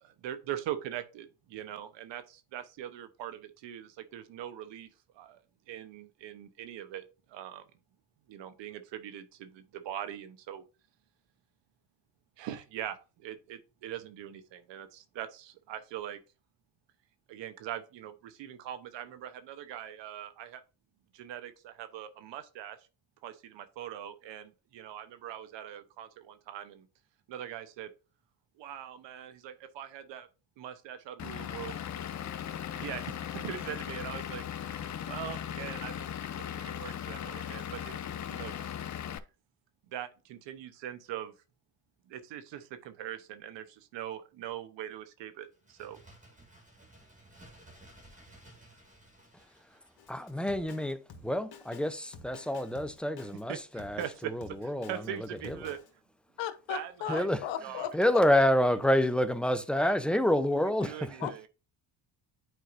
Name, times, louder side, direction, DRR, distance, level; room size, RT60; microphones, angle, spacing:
voice 1, 0.0-4.9 5.2-5.4 5.7-7.0 7.3-7.6 8.3-10.6 12.4-16.2 17.3-20.6 21.1-22.8 23.2-26.9 27.3-27.9 28.6-30.3 30.6-31.8 32.7-36.1 36.4-38.0 38.3-38.7 39.9-41.3 42.1-46.0 53.5-53.6 54.0-54.3 54.9-55.8 56.7-57.3 57.6-57.9 58.3-58.5 59.8-59.9 60.8-61.5, right 11 dB, 75° right, 1.0 m, -42 dB
Vehicle / Engine, 31.2-39.2, left 9 dB, 40° left, 0.7 m, -38 dB
Bird, 45.5-51.1 51.3-51.4, right 1 dB, 15° right, 1.9 m, -57 dB
Drum kit, 50.0-55.9, left 4 dB, 55° left, 1.5 m, -51 dB
voice 2, 50.1-55.8 57.1-57.4 57.9-61.3, left 1 dB, ahead, 0.6 m, -28 dB
voice 3, 56.4-57.9 61.2-61.5, left 11 dB, 75° left, 1.0 m, -36 dB
9.1 x 4.5 x 2.6 m
supercardioid pair, 80°, 45 cm